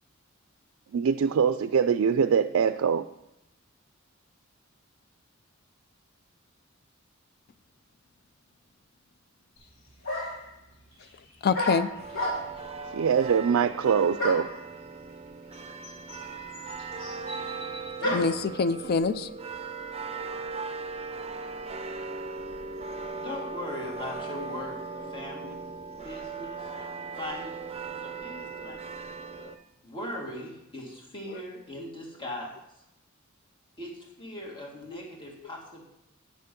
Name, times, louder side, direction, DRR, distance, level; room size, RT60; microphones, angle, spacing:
voice 1, 0.9-3.1 12.9-14.5, right 6 dB, 80° right, 11 dB, 0.4 m, -23 dB
sound 1, 9.6-9.7 10.0-10.5 11.5-12.7 14.2-14.6 15.5-15.6 15.8-18.4, left 1 dB, 75° left, 3.8 m, -32 dB
voice 2, 11.4-11.9 18.1-19.3 20.1-20.2 26.7-26.8 28.6-28.8 29.4-29.5 31.3-31.4 34.9-35.0, left 5 dB, 50° left, 13 dB, 0.4 m, -27 dB
sound 2, 12.0-29.6, right 4 dB, 30° right, 0.6 m, -38 dB
voice 3, 23.2-25.6 25.9-26.7 27.2-27.6 27.9-29.1 29.8-32.6 33.8-35.9, left 1 dB, 25° left, -1 dB, 1.9 m, -39 dB
9.3 x 6.7 x 5.3 m, 0.86 s
head